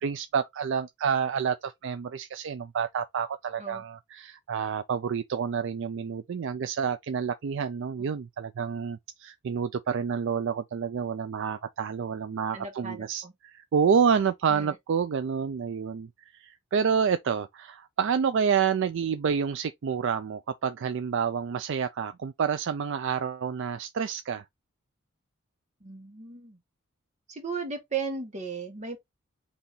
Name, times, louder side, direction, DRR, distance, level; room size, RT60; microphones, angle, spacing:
voice 1, 0.0-24.4, right 6 dB, 60° right, 0.4 m, -28 dB
voice 2, 12.5-13.3 14.5-14.7 25.8-26.6 27.3-29.0, right 5 dB, 35° right, 1.5 m, -36 dB
4.0 x 3.0 x 3.7 m
head